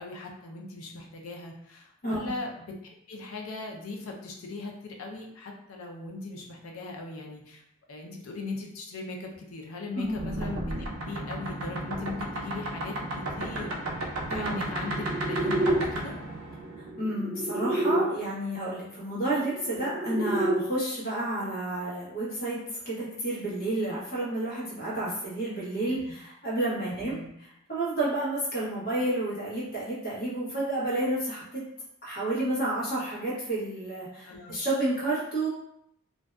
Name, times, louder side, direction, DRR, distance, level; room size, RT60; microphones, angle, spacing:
voice 1, 0.0-2.7 3.1-7.6 7.9-10.7 11.0-16.2 25.9-26.0 26.9-27.3 34.2-34.6, left 3 dB, 90° left, 1 dB, 0.5 m, -39 dB
voice 2, 2.0-2.3 9.9-10.2 14.3-14.6 16.8-31.7 32.0-35.5, right 1 dB, 45° left, -7 dB, 1.0 m, -30 dB
sound 1, 10.2-18.1 19.3-20.6, right 1 dB, 85° right, 0.5 m, -31 dB
2.5 x 2.3 x 2.2 m, 0.74 s
head